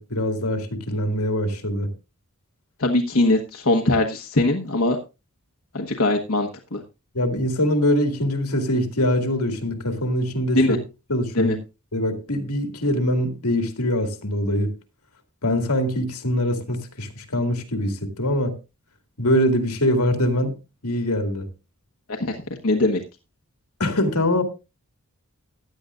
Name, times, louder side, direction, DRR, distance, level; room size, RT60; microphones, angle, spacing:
voice 1, 0.0-1.9 7.1-10.8 11.1-11.6 11.9-14.7 15.4-18.5 19.2-20.5 20.8-21.5 23.8-24.4, left 1 dB, 85° left, 2.2 m, -23 dB
voice 2, 2.8-5.0 5.7-6.8 10.6-10.8 11.3-11.5 22.1-22.4 22.6-23.0, left 2 dB, 65° left, 1.2 m, -21 dB
16.0 x 10.0 x 2.5 m
head